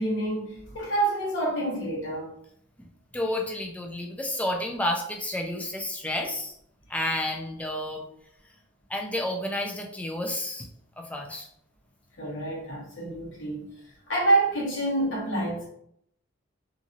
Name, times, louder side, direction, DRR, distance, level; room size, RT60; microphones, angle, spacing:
voice 1, 0.0-2.3 12.2-13.7 14.1-15.7, right 2 dB, 65° left, 1.3 m, -27 dB
voice 2, 2.8-6.5 6.9-8.1 8.9-10.7 11.0-11.5, left 1 dB, 5° left, 0.4 m, -31 dB
2.8 x 2.7 x 2.5 m
head